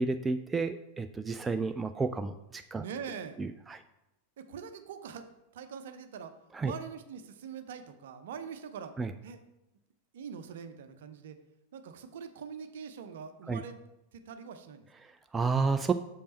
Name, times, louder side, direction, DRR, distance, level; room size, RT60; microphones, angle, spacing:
voice 1, 0.0-2.8 3.4-3.8 6.5-6.7 9.0-9.1 13.5-13.6 15.0-15.9, right 4 dB, 15° right, 9 dB, 0.3 m, -31 dB
voice 2, 2.8-3.4 4.4-5.3 5.5-6.3 6.6-8.9 9.2-9.4 10.1-11.4 11.7-13.7 14.1-14.9, right 7 dB, 60° right, 9 dB, 0.7 m, -43 dB
6.6 x 5.3 x 4.3 m, 0.90 s
figure-of-eight pair, 90°, 0 cm